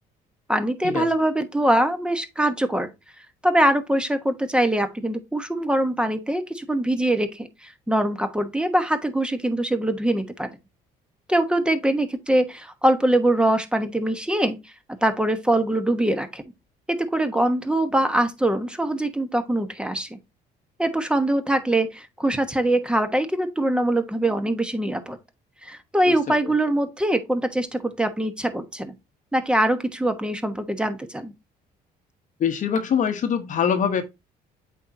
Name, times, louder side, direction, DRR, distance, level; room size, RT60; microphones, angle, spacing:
voice 1, 0.5-2.9 3.4-10.5 11.3-14.6 15.0-16.4 16.9-20.2 20.8-25.2 25.6-28.9 29.3-31.3, right 1 dB, 5° right, 1.1 m, -23 dB
voice 2, 32.4-34.0, left 7 dB, 50° left, 1.0 m, -23 dB
8.0 x 4.5 x 2.7 m
cardioid pair, 110°, 17 cm